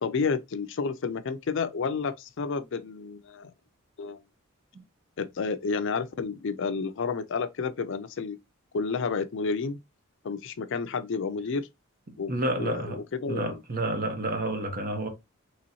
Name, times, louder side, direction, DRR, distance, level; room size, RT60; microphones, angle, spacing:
voice 1, 0.0-3.5 4.0-4.2 5.2-8.4 8.7-9.8 10.2-11.7 12.2-13.5, left 5 dB, 60° left, 0.5 m, -30 dB
voice 2, 12.3-13.0 13.3-15.1, right 1 dB, 45° right, 1.0 m, -29 dB
4.0 x 3.0 x 2.8 m
head